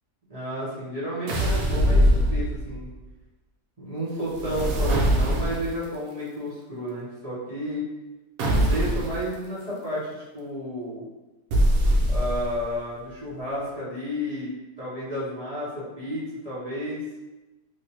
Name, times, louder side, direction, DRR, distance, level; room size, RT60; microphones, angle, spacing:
voice 1, 0.3-2.9 3.8-7.8 8.4-11.0 12.1-14.5 14.8-17.0, equal, 25° right, -11 dB, 1.0 m, -32 dB
sound 1, 1.3-2.9 4.3-5.8 8.4-9.2 11.5-12.6, equal, 70° right, 1.0 m, -22 dB
3.2 x 2.6 x 2.9 m, 1.1 s
omnidirectional pair, 1.7 m